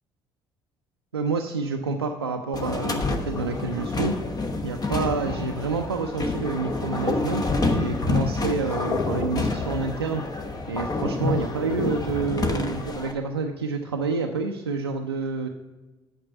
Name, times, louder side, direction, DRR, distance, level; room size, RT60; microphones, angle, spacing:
voice 1, 1.1-4.2 4.6-10.2 10.7-15.5, right 4 dB, 90° right, 2 dB, 0.4 m, -28 dB
sound 1, 2.5-13.1, left 3 dB, 30° left, 1.0 m, -28 dB
8.8 x 5.8 x 5.6 m, 1.2 s
figure-of-eight pair, 55°, 13 cm